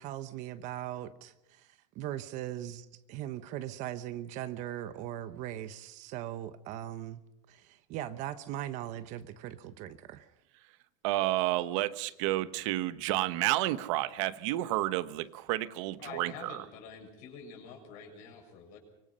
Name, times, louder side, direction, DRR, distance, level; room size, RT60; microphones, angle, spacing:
voice 1, 0.0-1.7 1.9-7.2 7.5-10.3, right 12 dB, 45° right, 11 dB, 1.1 m, -39 dB
voice 2, 11.0-16.6, right 16 dB, 65° right, 13 dB, 1.2 m, -30 dB
voice 3, 16.0-18.8, left 6 dB, 50° left, 3 dB, 6.7 m, -47 dB
24.5 x 24.0 x 5.6 m, 0.85 s
cardioid pair, 165°, 17 cm